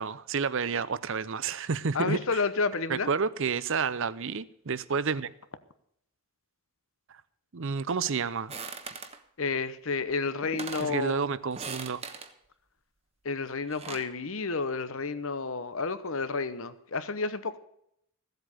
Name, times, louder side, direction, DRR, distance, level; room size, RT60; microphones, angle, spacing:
voice 1, 0.0-2.4 2.9-5.3 7.5-8.5 10.8-12.0, right 5 dB, 60° right, 0.6 m, -30 dB
voice 2, 1.9-3.1 9.4-11.2 13.2-17.6, left 4 dB, 65° left, 1.0 m, -30 dB
sound 1, 8.5-9.2 10.1-10.2 10.4-11.0 11.5-12.3 13.5-14.1, right 5 dB, 30° right, 1.1 m, -40 dB
16.0 x 8.0 x 6.5 m
head